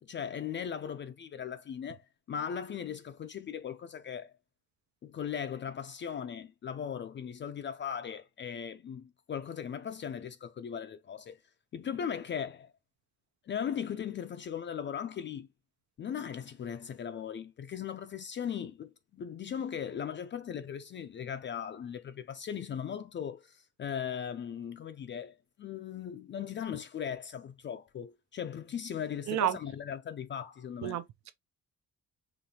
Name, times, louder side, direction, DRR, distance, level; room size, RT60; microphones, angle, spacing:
voice 1, 0.0-2.0 2.3-4.3 5.0-11.4 11.7-12.7 13.4-15.5 16.0-31.0, left 8 dB, 40° left, 0.4 m, -38 dB
voice 2, 30.8-31.3, right 12 dB, 70° right, 0.6 m, -31 dB
5.0 x 3.0 x 2.8 m
cardioid pair, 145°, 29 cm